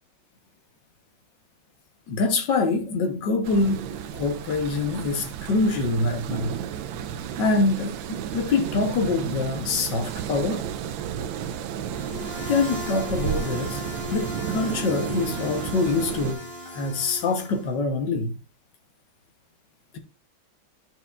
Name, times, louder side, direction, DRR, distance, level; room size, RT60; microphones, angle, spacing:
voice 1, 2.1-6.6 7.4-10.6 12.5-13.8 14.1-18.4, left 3 dB, 65° left, 1.7 m, -25 dB
sound 1, 3.4-16.3, right 9 dB, 80° right, 1.3 m, -33 dB
sound 2, 11.9-17.7, left 1 dB, 10° left, 1.8 m, -36 dB
11.0 x 6.2 x 2.4 m
omnidirectional pair, 2.2 m